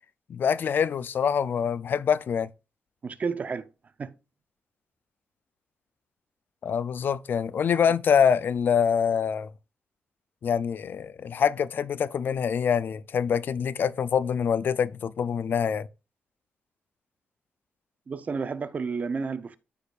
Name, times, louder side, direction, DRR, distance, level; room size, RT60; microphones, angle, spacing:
voice 1, 0.3-2.5 6.6-9.5 10.4-15.9, left 7 dB, 60° left, 0.4 m, -25 dB
voice 2, 3.0-3.7 4.0-4.1 18.1-19.6, right 5 dB, 40° right, 0.6 m, -31 dB
13.0 x 5.1 x 2.4 m
cardioid pair, 115°, 4 cm